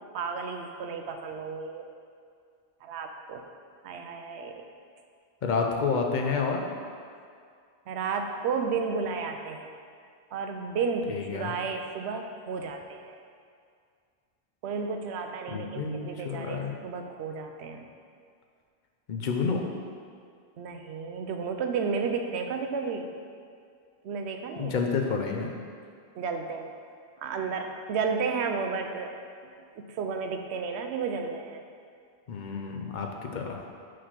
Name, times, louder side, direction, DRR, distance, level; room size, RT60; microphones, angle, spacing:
voice 1, 0.0-1.9 2.8-3.4 3.8-4.6 7.9-9.7 10.3-13.1 14.6-17.9 20.6-23.1 24.0-24.7 26.1-26.7 27.2-29.1 29.8-31.6, right 5 dB, 80° right, 5 dB, 0.9 m, -32 dB
voice 2, 5.4-6.6 11.1-11.5 15.5-16.7 19.1-19.7 24.6-25.5 32.3-33.6, left 5 dB, 50° left, 2 dB, 0.7 m, -29 dB
4.9 x 4.2 x 5.8 m, 2.2 s
omnidirectional pair, 1.1 m